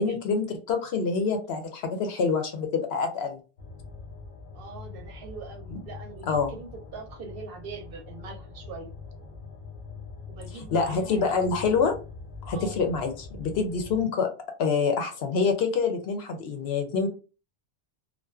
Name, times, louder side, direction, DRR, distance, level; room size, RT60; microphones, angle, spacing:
voice 1, 0.0-3.4 6.3-6.5 10.7-11.9 12.4-14.3 14.6-17.1, left 5 dB, 70° left, 5 dB, 0.8 m, -26 dB
sound 1, 3.6-14.0, left 4 dB, 50° left, 0.4 m, -43 dB
voice 2, 4.5-8.9 10.3-11.2 12.5-12.8, right 5 dB, 65° right, 4 dB, 0.7 m, -42 dB
2.5 x 2.1 x 2.3 m, 0.34 s
omnidirectional pair, 1.1 m